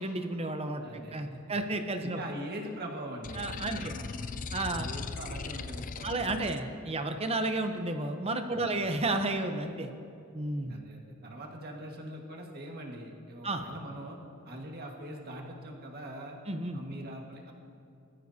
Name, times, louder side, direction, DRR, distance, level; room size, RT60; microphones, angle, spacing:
voice 1, 0.0-2.2 3.4-3.9 4.5-4.9 6.0-9.9 10.3-10.8 13.4-13.6 16.5-16.8, right 2 dB, 30° right, 7 dB, 0.8 m, -32 dB
voice 2, 0.8-1.4 2.0-4.1 4.4-4.5 4.7-6.7 8.5-8.8 10.7-14.2 14.5-16.4 16.7-17.5, right 1 dB, 45° right, 0 dB, 1.7 m, -42 dB
sound 1, 3.2-6.6, left 4 dB, 40° left, 0.5 m, -39 dB
21.0 x 14.0 x 2.8 m, 2.6 s
head